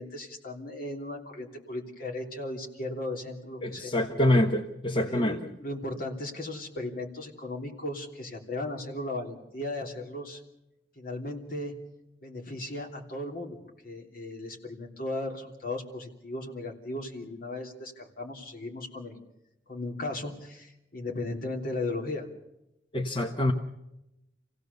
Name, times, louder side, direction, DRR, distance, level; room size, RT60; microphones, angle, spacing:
voice 1, 0.0-4.0 5.1-10.4 11.0-11.8 12.2-13.6 13.8-19.1 19.7-22.3, left 2 dB, 50° left, 1 dB, 3.2 m, -36 dB
voice 2, 3.6-5.4 22.9-23.5, left 1 dB, 30° left, 3 dB, 1.1 m, -25 dB
27.5 x 16.5 x 6.9 m, 0.91 s
head